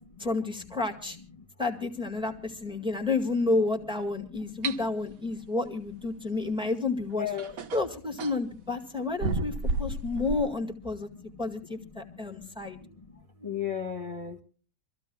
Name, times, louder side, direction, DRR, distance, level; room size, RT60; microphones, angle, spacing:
voice 1, 0.2-1.2 1.6-7.3 7.7-11.1 11.4-12.8, left 3 dB, 5° right, 3 dB, 1.8 m, -30 dB
sound 1, 4.6-4.8 6.7-6.8 7.4-8.4 9.2-10.5, right 2 dB, 60° right, 1.4 m, -31 dB
voice 2, 5.2-5.5 6.3-6.6 7.1-7.6 9.7-10.2 11.0-14.4, left 8 dB, 20° left, 0 dB, 1.4 m, -39 dB
26.5 x 15.0 x 2.3 m, 0.39 s
omnidirectional pair, 1.8 m